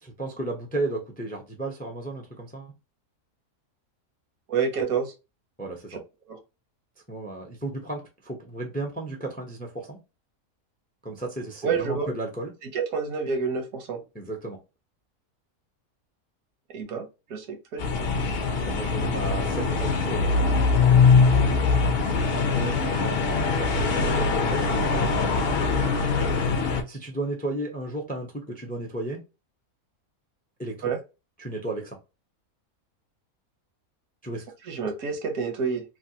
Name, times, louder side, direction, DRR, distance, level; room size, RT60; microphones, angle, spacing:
voice 1, 0.0-2.7 5.6-6.0 7.1-10.0 11.0-12.5 14.1-14.6 18.6-20.6 22.5-25.1 25.5-26.0 26.9-29.2 30.6-30.9 31.4-32.0 34.2-34.4, right 2 dB, 10° left, 0.4 m, -34 dB
voice 2, 4.5-5.1 5.9-6.0 6.3-6.4 11.6-12.1 12.7-14.0 16.7-18.1 30.8-31.0 34.7-35.8, right 5 dB, 80° right, 1.3 m, -28 dB
sound 1, 17.8-26.8, left 4 dB, 55° left, 0.7 m, -22 dB
3.2 x 2.3 x 2.7 m
omnidirectional pair, 1.5 m